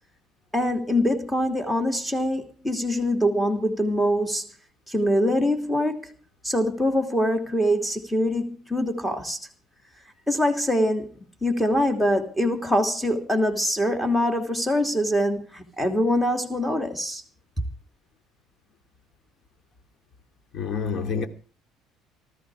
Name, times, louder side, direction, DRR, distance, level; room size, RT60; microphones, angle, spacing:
voice 1, 0.5-4.4 4.9-6.1 6.4-9.4 10.3-11.1 11.4-17.2, equal, 5° left, 2.9 m, -24 dB
voice 2, 20.5-21.3, left 5 dB, 55° left, 2.7 m, -27 dB
18.5 x 13.5 x 4.9 m
cardioid pair, 115°, 0 cm